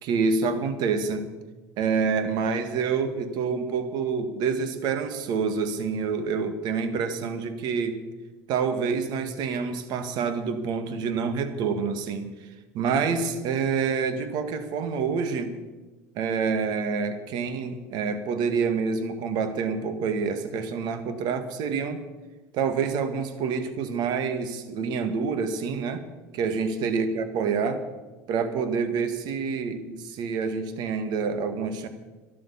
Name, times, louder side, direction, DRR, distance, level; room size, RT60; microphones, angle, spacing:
voice 1, 0.0-1.3 1.8-8.0 8.5-12.5 12.7-15.6 16.1-22.0 22.5-26.0 26.3-27.8 28.3-31.9, right 5 dB, 60° right, 9 dB, 1.8 m, -27 dB
12.5 x 11.0 x 7.1 m, 1.2 s
hypercardioid pair, 85°, 8 cm